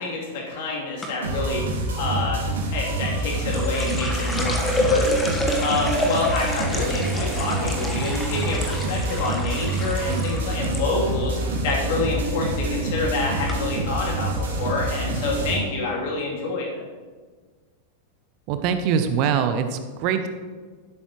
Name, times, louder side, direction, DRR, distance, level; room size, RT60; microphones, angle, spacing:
voice 1, 0.0-5.2 5.6-16.8, left 3 dB, 50° left, -3 dB, 3.2 m, -27 dB
sound 1, 1.0-1.4 2.9-10.8 11.1-11.7 12.0-12.4 13.0-13.1 13.5-13.6, left 1 dB, 15° left, 1.4 m, -28 dB
sound 2, 1.2-15.5, right 2 dB, 65° right, 2.5 m, -27 dB
voice 2, 18.5-20.3, right 7 dB, 45° right, 8 dB, 0.8 m, -23 dB
12.0 x 11.5 x 3.2 m, 1.5 s
figure-of-eight pair, 90°, 0 cm